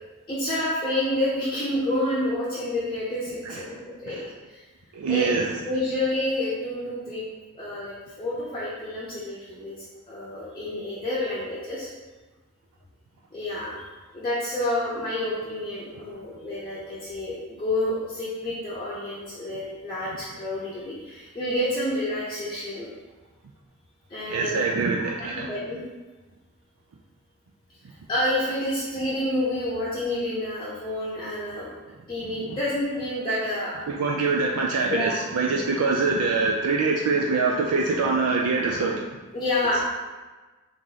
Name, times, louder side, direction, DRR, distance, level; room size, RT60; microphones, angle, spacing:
voice 1, 0.3-4.2 4.5-4.6 5.1-5.3 5.6-7.2 7.5-11.9 13.3-13.9 14.1-22.9 24.1-24.6 25.3-25.8 28.1-31.7 32.1-33.7 34.9-35.2 39.3-39.8, left 1 dB, 20° left, -9 dB, 0.7 m, -29 dB
voice 2, 4.9-5.5 24.3-25.5 32.5-32.6 33.9-39.1, right 4 dB, 85° right, 0 dB, 0.4 m, -24 dB
3.6 x 3.0 x 3.8 m, 1.2 s
head